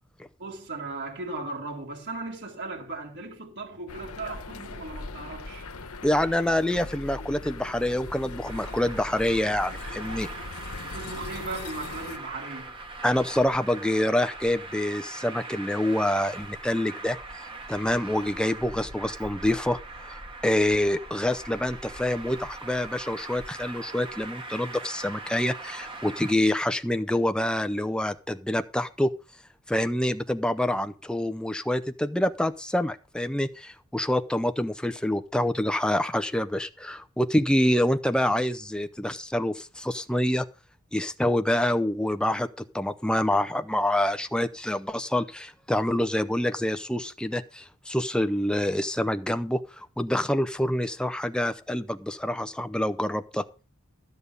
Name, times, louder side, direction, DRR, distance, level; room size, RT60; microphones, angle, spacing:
voice 1, 0.4-5.7 10.8-12.7, right 3 dB, 55° right, 3.8 m, -37 dB
sound 1, 3.9-12.2, left 3 dB, 75° left, 1.1 m, -40 dB
voice 2, 6.0-10.3 13.0-17.2 17.7-19.8 20.1-29.1 29.7-40.4 40.9-53.4, left 1 dB, 5° left, 0.6 m, -26 dB
Traffic noise roadway noise, 8.5-26.3, right 2 dB, 25° right, 1.7 m, -41 dB
13.5 x 5.3 x 8.3 m
head